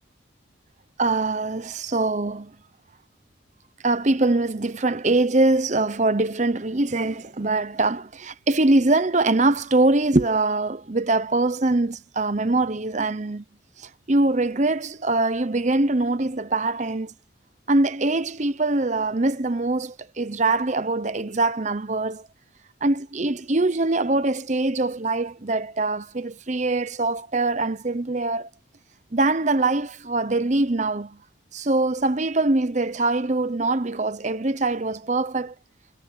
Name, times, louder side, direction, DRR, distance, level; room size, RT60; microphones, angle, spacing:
voice 1, 1.0-2.5 3.8-13.4 14.1-17.1 17.7-22.2 22.8-28.5 29.1-31.2 31.5-35.5, right 2 dB, 35° right, 0.9 m, -23 dB
head